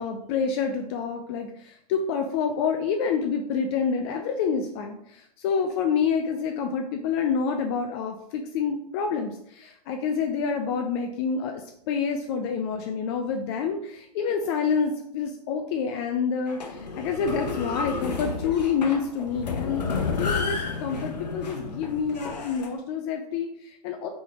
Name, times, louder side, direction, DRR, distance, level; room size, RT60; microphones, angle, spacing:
voice 1, 0.0-19.8 20.2-24.1, left 6 dB, 40° left, 4 dB, 0.4 m, -28 dB
sound 1, 16.5-22.7, left 4 dB, 80° left, 0.9 m, -31 dB
4.8 x 3.3 x 2.4 m, 0.73 s
hypercardioid pair, 110°, 21 cm